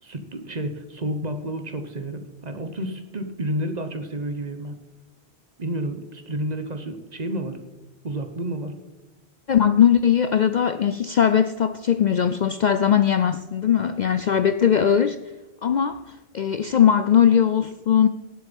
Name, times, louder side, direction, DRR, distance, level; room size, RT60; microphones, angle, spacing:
voice 1, 0.0-4.8 5.6-7.6 8.0-8.7, right 1 dB, 40° right, 8 dB, 1.2 m, -30 dB
voice 2, 9.5-15.2 15.6-16.0 16.3-18.1, left 8 dB, 55° left, 11 dB, 0.5 m, -19 dB
17.5 x 7.7 x 5.3 m, 1.1 s
omnidirectional pair, 1.1 m